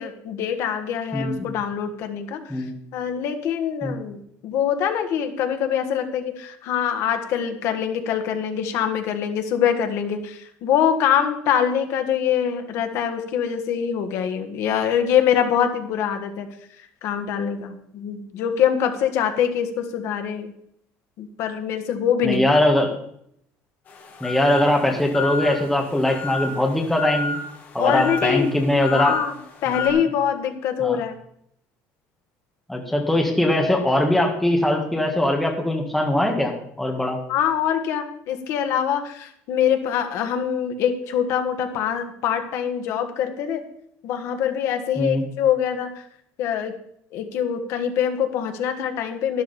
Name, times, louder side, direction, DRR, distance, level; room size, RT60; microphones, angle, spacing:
voice 1, 0.0-2.7 2.9-16.5 17.0-20.5 21.2-22.6 27.8-28.6 28.9-31.2 37.3-43.6 44.0-46.0 46.4-46.7 47.1-49.4, left 8 dB, 55° left, 6 dB, 1.6 m, -24 dB
voice 2, 1.1-1.5 2.5-2.7 3.8-3.9 22.2-22.9 24.2-27.4 27.7-29.1 29.7-29.9 30.8-31.0 32.7-37.2 45.0-45.2, left 1 dB, 5° left, 1 dB, 1.7 m, -21 dB
sound 1, 23.9-29.9, left 3 dB, 30° left, 2.1 m, -32 dB
12.0 x 11.5 x 4.3 m, 0.70 s
cardioid pair, 180°, 6 cm